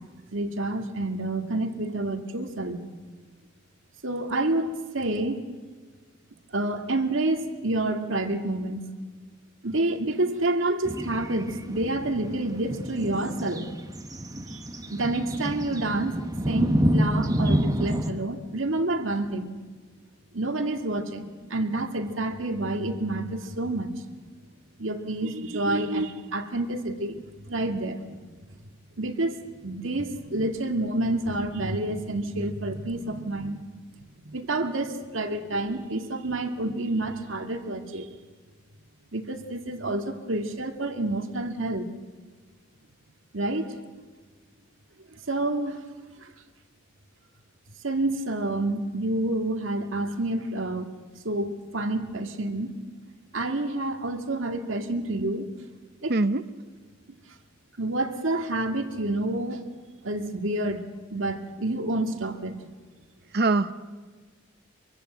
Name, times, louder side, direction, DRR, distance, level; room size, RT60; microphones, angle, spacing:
voice 1, 0.3-2.8 4.0-5.4 6.5-8.8 9.6-13.7 14.5-14.6 14.9-19.5 20.3-24.0 24.8-28.0 28.3-28.4 29.0-29.4 29.6-33.6 34.2-38.1 39.1-41.9 43.3-43.8 45.3-45.8 46.2-46.3 47.8-50.9 51.2-52.7 53.3-55.5 56.0-56.1 57.8-59.7 60.0-62.5, right 2 dB, 70° right, 6 dB, 2.1 m, -28 dB
sound 1, 10.8-18.1, equal, 15° right, 1.2 m, -28 dB
voice 2, 56.1-56.4 63.3-63.7, right 2 dB, 50° right, 13 dB, 0.9 m, -22 dB
24.5 x 23.5 x 7.9 m, 1.4 s
head